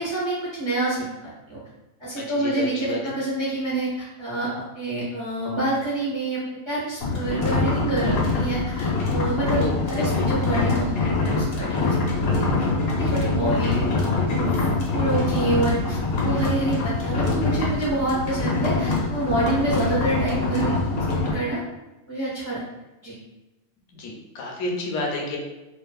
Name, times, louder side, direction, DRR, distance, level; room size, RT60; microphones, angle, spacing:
voice 1, 0.0-1.6 2.0-4.5 4.7-6.4 6.7-12.2 12.6-12.7 13.0-13.8 14.3-14.7 14.9-20.7 21.1-21.6 22.1-22.6 23.0-23.2, right 2 dB, 35° right, -8 dB, 0.5 m, -27 dB
voice 2, 2.3-3.0 9.6-9.7 10.1-10.2 13.4-13.6 24.0-25.4, left 2 dB, 65° left, 0 dB, 0.8 m, -30 dB
sound 1, 7.0-21.3, left 3 dB, 85° left, 1.1 m, -24 dB
2.5 x 2.4 x 2.2 m, 1.0 s
omnidirectional pair, 1.4 m